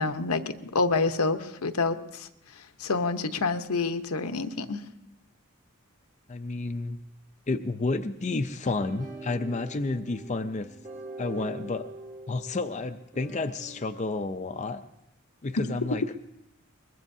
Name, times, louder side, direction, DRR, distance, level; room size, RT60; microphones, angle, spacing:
voice 1, 0.0-2.3 2.8-4.8, left 3 dB, 85° left, 8 dB, 0.9 m, -27 dB
voice 2, 6.3-7.0 7.5-10.7 11.2-11.9 12.3-14.8 15.4-16.0, left 3 dB, 30° left, 7 dB, 0.5 m, -30 dB
sound 1, 8.8-13.9, right 2 dB, 35° right, 1.8 m, -44 dB
23.0 x 21.5 x 2.7 m, 0.85 s
head